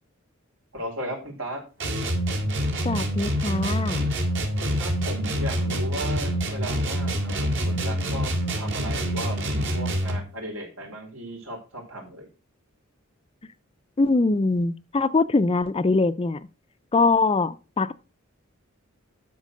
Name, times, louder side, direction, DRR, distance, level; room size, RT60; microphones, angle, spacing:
voice 1, 0.7-1.6 4.6-8.3 8.6-12.3, right 1 dB, 80° right, 4.9 m, -36 dB
sound 1, 1.8-10.3, equal, 60° right, 2.6 m, -26 dB
voice 2, 2.8-4.1 14.0-16.4 16.9-17.9, left 3 dB, 25° left, 0.4 m, -23 dB
12.5 x 4.6 x 6.4 m
head